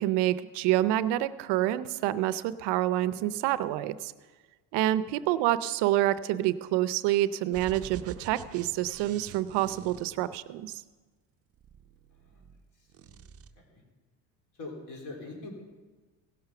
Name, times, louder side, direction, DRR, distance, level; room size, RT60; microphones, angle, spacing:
voice 1, 0.0-4.1 4.7-10.8, right 14 dB, 75° right, 14 dB, 0.6 m, -27 dB
sound 1, 7.5-10.8 11.5-12.6 12.9-13.5, right 9 dB, 35° right, 0.6 m, -47 dB
voice 2, 12.1-12.4 12.7-13.8 14.5-15.6, left 2 dB, 50° left, 0 dB, 3.4 m, -44 dB
17.0 x 6.8 x 5.9 m, 1.3 s
cardioid pair, 125°, 41 cm